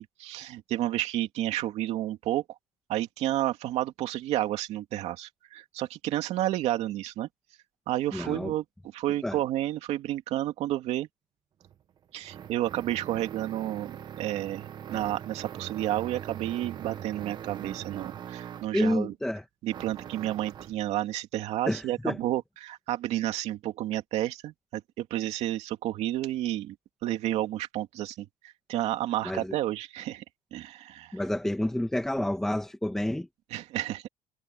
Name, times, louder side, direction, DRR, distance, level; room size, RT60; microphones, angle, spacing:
voice 1, 0.0-2.4 2.9-7.3 7.9-8.6 8.9-11.1 12.1-19.1 19.6-26.7 27.0-30.2 30.5-31.2 33.5-34.0, right 14 dB, 55° right, 2.7 m, -31 dB
voice 2, 8.1-8.5 9.2-9.4 18.7-19.4 21.7-22.2 29.3-29.6 31.1-33.3, left 1 dB, 5° left, 1.7 m, -29 dB
sound 1, 11.6-18.8 19.7-20.8, right 9 dB, 35° right, 1.4 m, -42 dB
cardioid pair, 155°, 13 cm